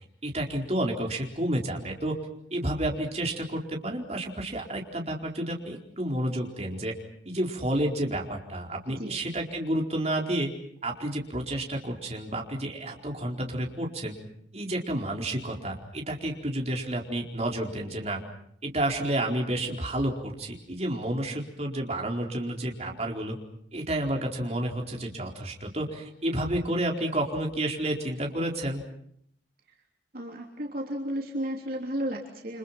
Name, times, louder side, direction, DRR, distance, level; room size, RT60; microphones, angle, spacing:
voice 1, 0.2-2.2 2.5-6.9 7.2-10.5 10.8-14.1 14.5-18.2 18.6-23.4 23.7-28.8, right 1 dB, 35° right, 1 dB, 4.4 m, -30 dB
voice 2, 30.1-32.6, equal, 55° right, 1 dB, 3.3 m, -33 dB
29.5 x 27.0 x 6.0 m, 0.68 s
head